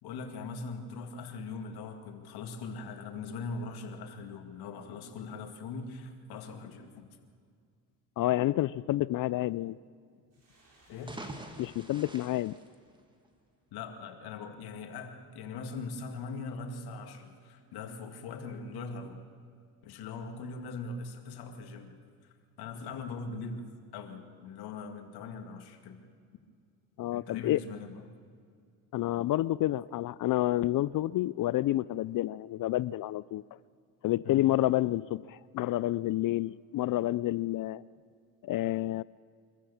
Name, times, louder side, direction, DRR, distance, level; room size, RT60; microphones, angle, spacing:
voice 1, 0.0-7.1 10.9-11.2 13.7-19.2 19.8-26.0 27.1-28.1 34.2-34.5, left 4 dB, 85° left, 2.3 m, -41 dB
voice 2, 8.2-9.8 11.6-12.5 27.0-27.6 28.9-33.4 34.0-37.8 38.4-39.0, left 15 dB, 60° left, 0.5 m, -29 dB
sound 1, 10.3-13.7, right 1 dB, 45° right, 6.9 m, -63 dB
sound 2, 10.9-13.5, right 1 dB, 10° right, 2.0 m, -46 dB
24.5 x 15.0 x 7.2 m
cardioid pair, 110°, 37 cm